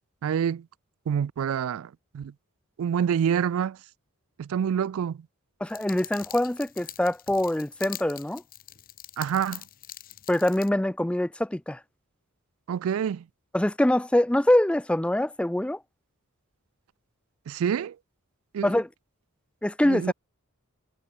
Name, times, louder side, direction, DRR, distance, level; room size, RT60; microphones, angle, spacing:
voice 1, 0.2-0.7 1.1-2.3 2.8-3.8 4.4-5.2 9.2-9.6 12.7-13.2 17.5-18.0 18.5-18.7 19.8-20.1, right 8 dB, 75° right, 0.3 m, -27 dB
voice 2, 5.6-8.4 10.3-11.8 13.5-15.8 18.6-18.9 19.6-20.1, left 1 dB, 5° left, 0.4 m, -24 dB
sound 1, 5.7-10.7, left 13 dB, 45° left, 1.0 m, -44 dB
head